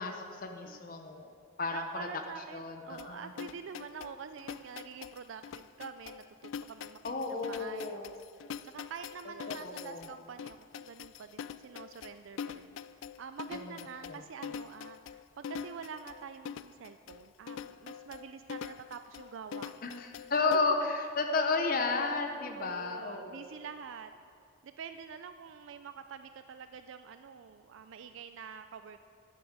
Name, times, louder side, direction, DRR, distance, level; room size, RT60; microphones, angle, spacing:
voice 1, 0.0-1.3 1.6-2.1 2.5-3.3 7.0-8.1 9.5-10.1 14.1-14.2 19.8-23.5, left 3 dB, 45° left, 4 dB, 0.7 m, -32 dB
voice 2, 1.7-8.1 8.6-19.8 22.5-24.1 24.6-29.1, right 6 dB, 70° right, 9 dB, 0.4 m, -46 dB
sound 1, 3.0-20.6, left 7 dB, 70° left, 0.3 m, -44 dB
9.7 x 8.5 x 7.3 m, 2.3 s
head